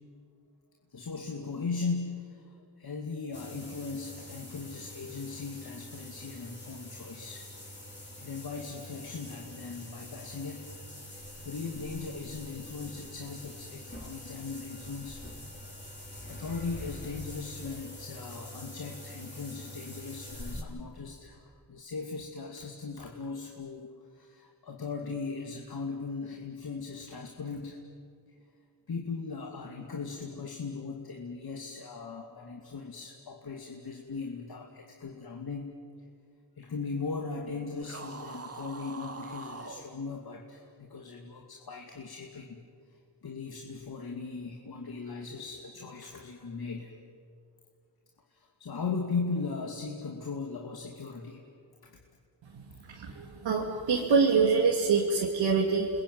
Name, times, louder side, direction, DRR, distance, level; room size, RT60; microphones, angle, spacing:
voice 1, 0.9-7.5 8.2-10.7 11.4-15.2 16.3-21.4 21.7-27.8 28.9-35.8 36.6-42.6 43.2-46.9 48.3-51.4 51.8-52.0, left 4 dB, 55° left, 1 dB, 2.7 m, -38 dB
sound 1, 3.3-20.6, left 1 dB, 25° left, 5.6 m, -45 dB
sound 2, 37.8-39.9, right 3 dB, 30° right, 2.3 m, -43 dB
voice 2, 52.5-55.9, right 5 dB, 75° right, -1 dB, 2.8 m, -26 dB
29.0 x 21.5 x 9.4 m, 2.3 s
cardioid pair, 70°, 44 cm